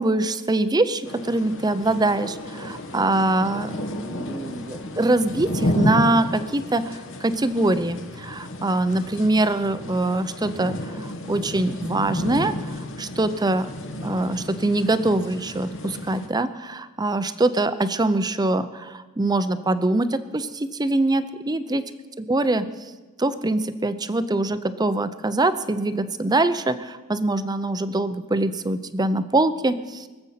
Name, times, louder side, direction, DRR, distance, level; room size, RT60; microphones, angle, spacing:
voice 1, 0.0-13.7 14.0-21.8 22.2-22.9 23.2-30.1, right 2 dB, 20° right, 12 dB, 0.6 m, -23 dB
sound 1, 1.0-16.3, left 1 dB, 60° left, 1.3 m, -32 dB
23.5 x 7.9 x 5.7 m, 1.3 s
head